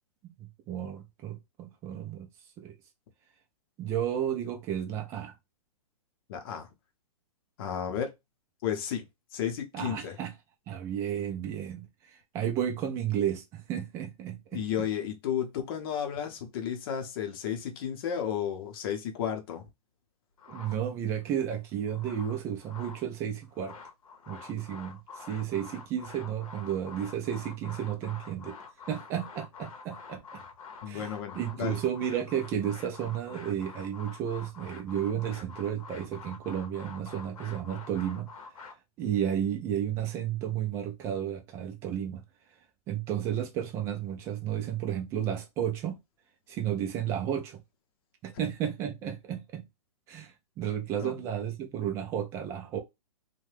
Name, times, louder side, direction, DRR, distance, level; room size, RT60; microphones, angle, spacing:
voice 1, 0.4-2.3 2.6-2.7 3.8-5.3 9.7-10.3 10.7-11.9 12.3-14.6 20.5-23.7 24.3-28.6 28.9-30.4 30.9-31.1 31.4-38.3 39.0-42.2 42.9-46.0 46.5-47.6 48.2-49.7 50.1-52.8, right 10 dB, 15° right, 0.4 m, -32 dB
voice 2, 6.3-6.7 7.6-8.1 8.6-9.1 9.3-10.2 14.5-19.6 30.8-31.8 51.0-51.3, left 9 dB, 40° left, 0.8 m, -33 dB
sound 1, 20.4-21.2 21.7-23.1 23.4-38.7, left 5 dB, 70° left, 0.8 m, -47 dB
2.7 x 2.2 x 3.2 m
hypercardioid pair, 155°, 19 cm